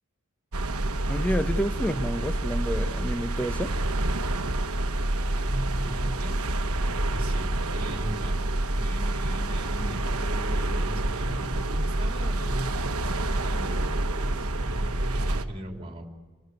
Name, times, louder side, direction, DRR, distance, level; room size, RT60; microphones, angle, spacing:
sound 1, 0.5-15.4, right 1 dB, 70° right, 1.1 m, -28 dB
voice 1, 1.1-3.7, equal, 5° left, 9 dB, 0.9 m, -29 dB
voice 2, 5.4-6.4 6.6-8.4 8.7-16.1, right 1 dB, 25° right, 2 dB, 3.2 m, -39 dB
28.5 x 17.5 x 9.4 m, 1.4 s
head